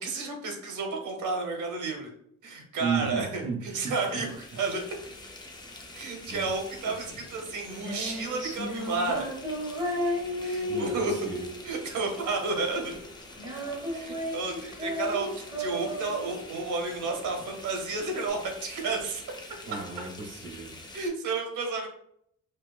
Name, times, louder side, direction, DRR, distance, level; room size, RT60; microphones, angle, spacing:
voice 1, 0.0-2.1 2.4-4.3 4.5-4.8 5.9-9.3 10.4-11.3 11.6-13.0 13.9-19.2 20.9-21.9, right 3 dB, 75° right, 2 dB, 0.9 m, -31 dB
voice 2, 2.8-4.2 6.3-6.5 6.8-7.2 10.7-11.5 19.7-20.9, right 5 dB, 40° right, -1 dB, 0.9 m, -35 dB
sound 1, 3.6-21.1, left 2 dB, 15° left, 0.3 m, -47 dB
Female singing, 7.3-18.3, equal, 15° right, 0.9 m, -34 dB
4.5 x 2.4 x 2.3 m, 0.70 s
wide cardioid pair, 175°, 30 cm